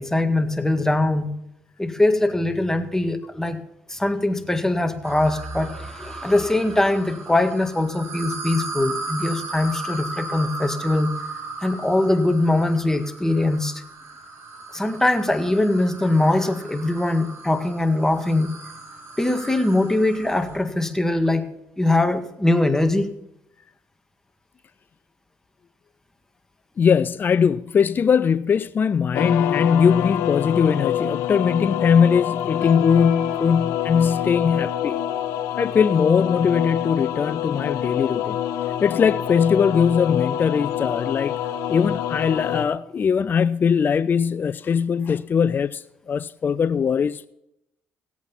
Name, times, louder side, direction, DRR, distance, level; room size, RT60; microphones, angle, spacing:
voice 1, 0.0-1.3 1.8-3.6 3.9-11.1 11.6-13.8 14.7-18.5 19.2-21.5 21.8-23.1, left 2 dB, 10° left, 1.7 m, -22 dB
sound 1, 5.0-20.7, right 3 dB, 60° right, 5.0 m, -36 dB
voice 2, 26.8-35.0 35.6-38.4 38.8-41.4 41.7-47.3, left 6 dB, 45° left, 0.5 m, -20 dB
sound 2, 29.1-42.6, left 11 dB, 85° left, 1.0 m, -26 dB
17.0 x 8.5 x 5.7 m
supercardioid pair, 70°, 5 cm